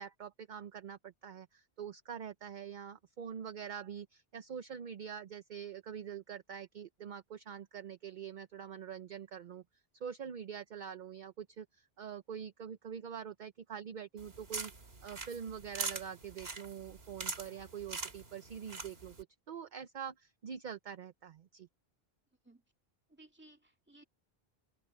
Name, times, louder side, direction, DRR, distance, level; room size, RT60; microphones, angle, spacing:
voice 1, 0.0-9.6 10.0-14.7 15.0-21.7, right 8 dB, 55° right, 0.7 m, -45 dB
sound 1, 14.2-19.2, right 3 dB, 75° right, 2.4 m, -43 dB
voice 2, 23.1-24.1, right 2 dB, 10° right, 2.1 m, -59 dB
omnidirectional pair, 1.0 m